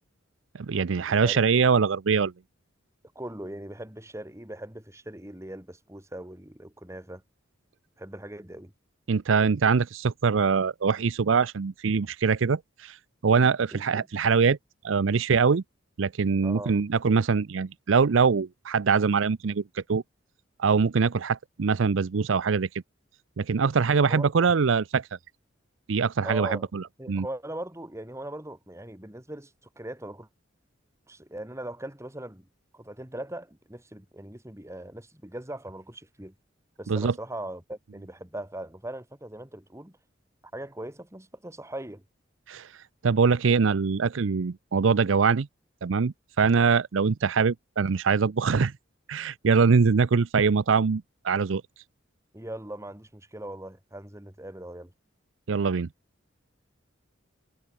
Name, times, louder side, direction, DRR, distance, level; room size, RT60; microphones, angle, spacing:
voice 1, 0.7-2.3 9.1-13.0 13.2-14.6 14.8-15.6 16.0-20.0 20.6-22.7 23.4-25.1 25.9-27.3 36.9-37.1 42.5-42.7 43.0-45.5 45.8-48.7 49.1-51.6 55.5-55.9, right 5 dB, 75° right, 0.5 m, -23 dB
voice 2, 1.2-1.8 3.1-7.2 8.0-8.7 13.4-14.1 16.4-16.7 24.1-24.3 26.2-26.7 27.0-30.3 31.1-32.5 32.7-36.3 36.8-40.0 40.5-42.0 52.3-54.9, right 1 dB, 15° right, 2.5 m, -40 dB
head